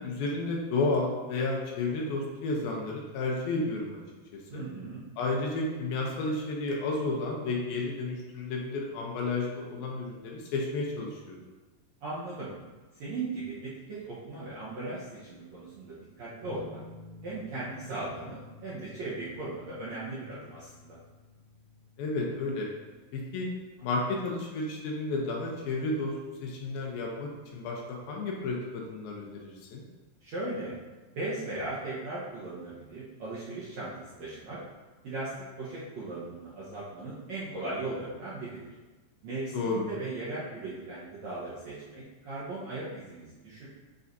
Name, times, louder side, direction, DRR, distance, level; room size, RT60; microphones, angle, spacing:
voice 1, 0.0-4.0 4.3-4.6 5.2-11.4 22.0-22.7 23.1-23.5 23.8-26.1 26.4-29.8 39.5-39.9, left 3 dB, 75° left, -1 dB, 2.5 m, -32 dB
voice 2, 4.5-5.0 12.0-12.5 13.0-16.8 17.2-21.0 30.2-30.7 31.1-34.6 35.0-35.3 35.6-38.6 39.2-43.7, right 2 dB, 65° right, -10 dB, 1.7 m, -38 dB
sound 1, 16.4-23.6, left 3 dB, 55° left, 1.5 m, -52 dB
9.3 x 4.8 x 2.7 m, 1.3 s
omnidirectional pair, 4.6 m